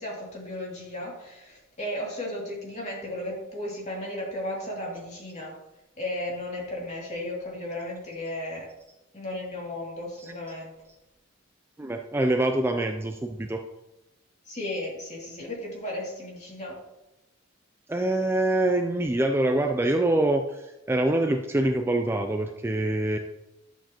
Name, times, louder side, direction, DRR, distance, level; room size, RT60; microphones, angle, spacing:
voice 1, 0.0-5.6 6.0-8.7 9.1-10.7 14.5-16.8, left 1 dB, 35° left, -3 dB, 2.6 m, -35 dB
voice 2, 11.8-13.6 17.9-23.2, right 1 dB, 10° right, 4 dB, 0.4 m, -25 dB
10.5 x 7.2 x 3.0 m, 0.96 s
head